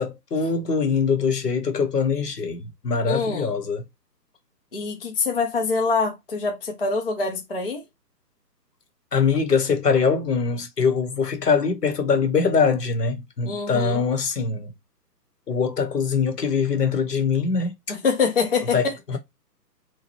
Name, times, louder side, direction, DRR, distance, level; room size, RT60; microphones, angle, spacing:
voice 1, 0.0-3.8 9.1-14.7 15.5-17.7 18.7-19.2, left 5 dB, 70° left, 1.0 m, -23 dB
voice 2, 3.0-3.5 4.7-7.8 13.4-14.0 17.9-18.9, left 4 dB, 35° left, 0.5 m, -25 dB
2.9 x 2.2 x 2.9 m
figure-of-eight pair, 145°, 50 cm